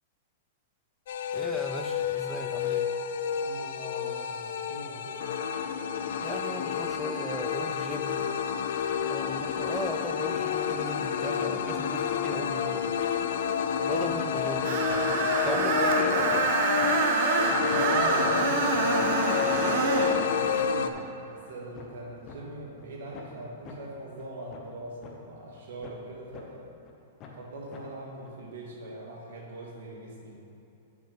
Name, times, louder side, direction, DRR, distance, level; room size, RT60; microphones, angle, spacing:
sound 1, 1.1-20.9, left 7 dB, 70° left, 0.4 m, -29 dB
voice 1, 1.3-2.9 6.2-8.3 9.0-13.1 13.8-16.6, right 1 dB, 5° right, 5 dB, 0.4 m, -38 dB
voice 2, 3.3-5.2 17.5-19.3 19.9-26.7 27.3-30.3, right 1 dB, 75° right, -1 dB, 1.8 m, -42 dB
sound 2, 14.1-14.2 14.6-15.0 15.4-15.5 15.9-16.0 16.3-16.5 16.8-16.9 17.3-17.4 17.7-17.8 18.2-18.3 18.7-19.6 20.1-20.2 20.4-20.6 20.9-21.0 21.5-22.4 22.8-22.9 23.1-23.3 23.6-23.8 24.2-24.3 24.5-24.7 25.0-25.1 25.5-26.1 26.3-26.4 26.9-27.0 27.2-27.4 27.7-27.8 28.2-28.3, left 6 dB, 25° left, 0.9 m, -46 dB
Screech, 14.6-20.2, right 4 dB, 50° right, 0.8 m, -26 dB
6.9 x 6.2 x 5.2 m, 2.9 s
hypercardioid pair, 155°, 0 cm